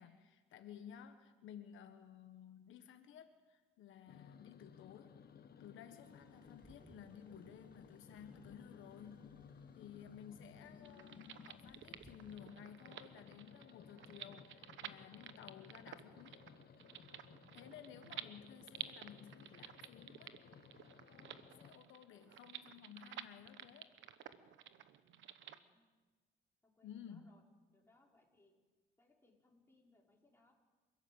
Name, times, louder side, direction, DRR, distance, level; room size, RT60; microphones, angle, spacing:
voice 1, 0.0-5.2 5.6-9.3 9.7-16.5 17.5-20.5 21.1-23.9 26.8-27.2, left 9 dB, 85° left, 7 dB, 1.3 m, -55 dB
sound 1, 4.1-21.7, left 7 dB, 55° left, 1.2 m, -59 dB
sound 2, 6.1-12.4, right 2 dB, 25° right, 1.5 m, -65 dB
sound 3, 10.8-25.6, right 10 dB, 75° right, 1.1 m, -52 dB
voice 2, 25.5-25.9 26.6-27.4 27.7-28.5 29.0-30.5, left 2 dB, 10° left, -2 dB, 5.1 m, -71 dB
28.0 x 12.0 x 8.0 m, 1.3 s
cardioid pair, 90°, 20 cm